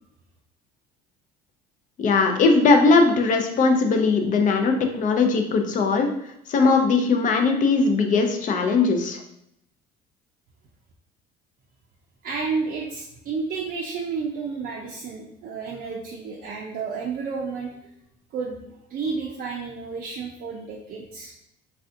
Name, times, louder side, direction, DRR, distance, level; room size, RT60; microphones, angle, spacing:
voice 1, 2.0-6.1 6.5-9.2, left 4 dB, 40° left, 5 dB, 0.5 m, -19 dB
voice 2, 12.2-17.7 18.3-18.6 18.9-21.3, right 5 dB, 45° right, -2 dB, 0.4 m, -31 dB
3.3 x 2.4 x 2.6 m, 0.76 s
cardioid pair, 115°, 20 cm